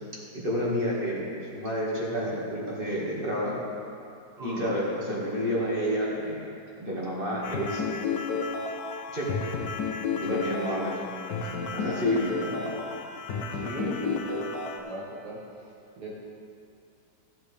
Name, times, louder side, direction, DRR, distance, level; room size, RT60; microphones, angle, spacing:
voice 1, 0.3-1.3 1.5-3.5 4.4-6.4 6.8-7.8 9.1-9.4 10.2-10.9 11.7-12.5, equal, 30° right, -5 dB, 2.0 m, -29 dB
voice 2, 4.4-4.8 10.3-10.5 12.4-12.8 13.5-14.5 14.8-15.4 16.0-16.1, right 1 dB, 70° right, -5 dB, 2.4 m, -38 dB
sound 1, 7.4-14.8, left 4 dB, 85° left, 1.5 m, -32 dB
15.0 x 8.2 x 3.4 m, 2.5 s
omnidirectional pair, 1.8 m